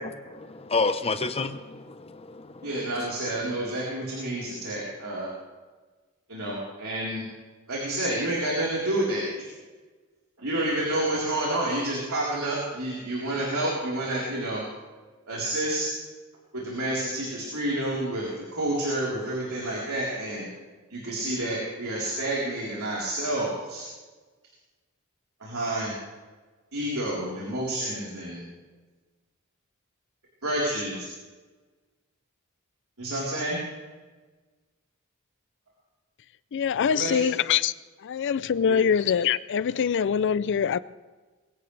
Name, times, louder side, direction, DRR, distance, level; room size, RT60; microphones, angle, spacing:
voice 1, 0.3-2.7, left 3 dB, 25° left, 0.8 m, -29 dB
voice 2, 2.6-5.3 6.3-7.2 7.7-9.3 10.4-14.6 15.3-15.9 16.5-20.5 20.9-23.9 25.4-25.9 26.7-28.5 30.4-31.1 33.0-33.6 36.9-37.2 38.7-38.8, right 1 dB, 70° right, 4.0 m, -29 dB
voice 3, 36.5-37.7 38.0-40.8, left 7 dB, 55° left, 0.4 m, -24 dB
21.5 x 16.5 x 3.3 m
head